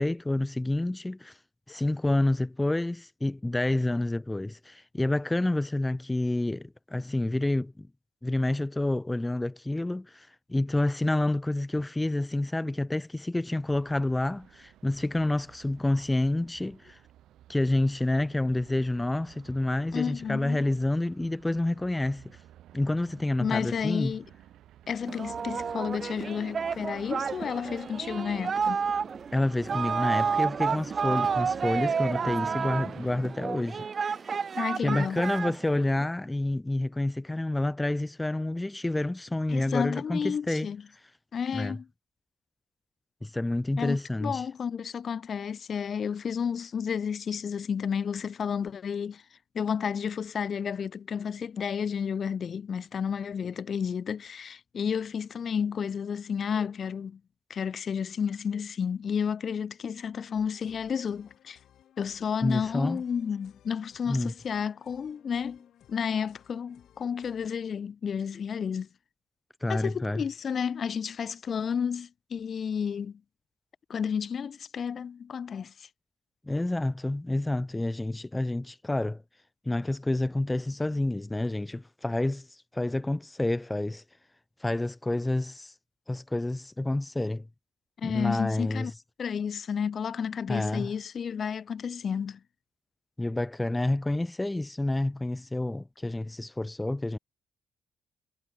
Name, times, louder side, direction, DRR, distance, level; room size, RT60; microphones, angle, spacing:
voice 1, 0.0-1.4 1.7-7.9 8.2-17.0 17.5-22.2 22.7-24.1 29.3-33.9 34.8-40.7 41.5-41.8 43.2-44.4 62.4-63.0 64.1-64.3 69.6-70.2 76.4-79.2 79.7-82.5 82.7-84.0 84.6-85.7 86.1-87.5 88.0-88.9 90.5-90.9 93.2-97.2, left 2 dB, 10° left, 0.7 m, -28 dB
sound 1, 13.7-33.2, right 12 dB, 80° right, 2.6 m, -54 dB
voice 2, 19.9-20.7 23.4-24.3 24.9-28.8 34.6-35.2 39.5-40.8 41.3-41.9 43.8-49.2 49.5-57.2 57.5-61.6 62.0-68.9 69.7-73.2 73.9-75.9 88.0-88.9 89.2-92.4, left 7 dB, 45° left, 0.8 m, -31 dB
Singing, 25.1-36.0, right 6 dB, 40° right, 0.3 m, -30 dB
sound 2, 60.3-67.5, left 11 dB, 70° left, 3.7 m, -60 dB
cardioid pair, 125°, 0 cm